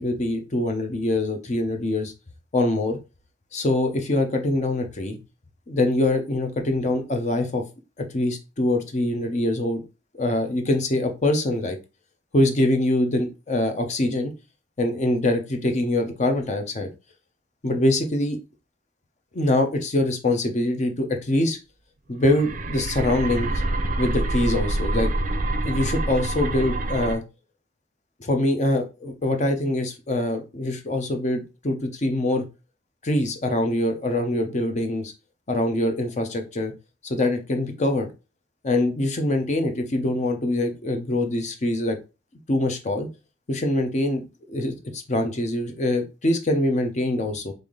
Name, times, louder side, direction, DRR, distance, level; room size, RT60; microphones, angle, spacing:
voice 1, 0.0-2.1 2.5-3.0 3.5-5.2 5.7-7.6 8.0-9.8 10.1-11.8 12.3-14.3 14.8-16.9 17.6-18.4 19.3-21.6 22.1-23.5 24.0-25.1 25.6-27.2 28.2-32.4 33.0-35.1 35.5-36.7 37.0-38.1 38.6-42.0 42.5-43.1 43.5-44.2 44.5-47.5, left 1 dB, 40° left, 5 dB, 0.6 m, -24 dB
sound 1, 22.2-27.2, right 2 dB, 45° right, 0.5 m, -26 dB
3.3 x 2.6 x 3.7 m, 0.29 s
head